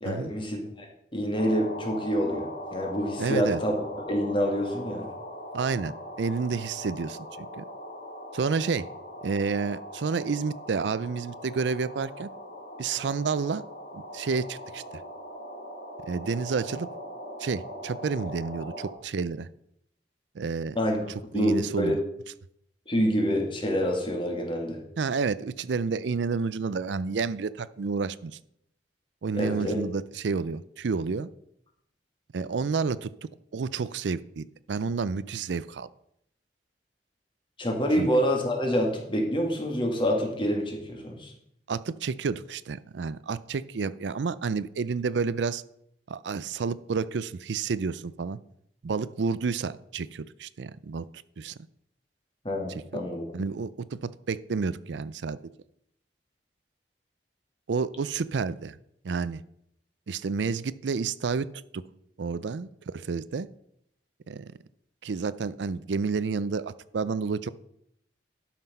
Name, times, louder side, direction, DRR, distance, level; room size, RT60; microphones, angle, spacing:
voice 1, 0.0-5.1 20.8-21.9 22.9-24.8 29.3-29.8 37.6-41.3 52.4-53.3, equal, 30° left, 1 dB, 2.2 m, -27 dB
Native Feature, 1.3-18.9, equal, 50° left, 2.2 m, -40 dB
voice 2, 3.2-3.6 5.5-7.6 8.3-8.9 9.2-12.3 12.8-13.6 13.9-14.8 16.1-16.9 17.4-19.5 20.3-20.8 21.3-22.0 25.0-28.4 29.2-31.3 32.3-33.1 33.5-35.9 38.0-38.1 41.7-45.6 46.1-48.4 48.8-51.1 51.4-51.5 53.3-55.4 57.7-58.8 59.0-59.4 60.1-61.5 61.7-61.8 62.2-63.5 64.3-64.5 65.0-67.5, right 5 dB, 85° right, 16 dB, 0.5 m, -30 dB
12.0 x 5.9 x 5.4 m, 0.75 s
head